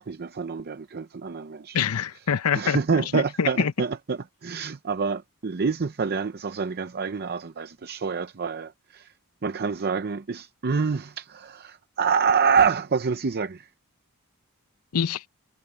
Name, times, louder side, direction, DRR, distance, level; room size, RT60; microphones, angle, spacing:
voice 1, 0.0-1.8 2.5-9.1 9.4-13.7, right 5 dB, 45° right, 0.6 m, -27 dB
voice 2, 1.7-2.8 3.1-3.7 14.9-15.3, left 7 dB, 80° left, 0.6 m, -25 dB
head